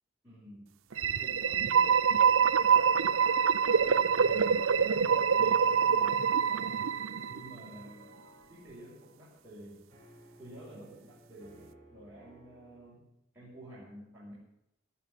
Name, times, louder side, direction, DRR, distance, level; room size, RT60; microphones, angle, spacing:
voice 1, 0.2-0.7 1.2-3.4 3.7-6.8 7.3-8.1 8.5-9.8 10.4-14.3, right 1 dB, 10° right, -10 dB, 5.3 m, -50 dB
sound 1, 0.9-12.9, equal, 35° right, 6.9 m, -59 dB
sound 2, 0.9-7.7, right 6 dB, 85° right, 0.6 m, -25 dB
17.0 x 5.8 x 9.3 m, 0.84 s
head